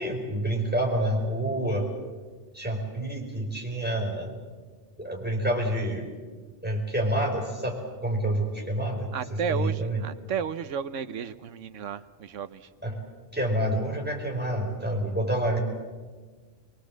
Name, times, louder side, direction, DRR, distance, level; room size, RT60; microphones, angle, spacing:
voice 1, 0.0-1.9 2.5-4.3 5.0-6.1 6.6-10.0 12.8-13.0 13.3-15.6, right 1 dB, 5° right, 0 dB, 4.7 m, -28 dB
voice 2, 9.1-12.7, right 7 dB, 70° right, 12 dB, 1.2 m, -33 dB
23.5 x 23.0 x 7.6 m, 1.4 s
omnidirectional pair, 1.3 m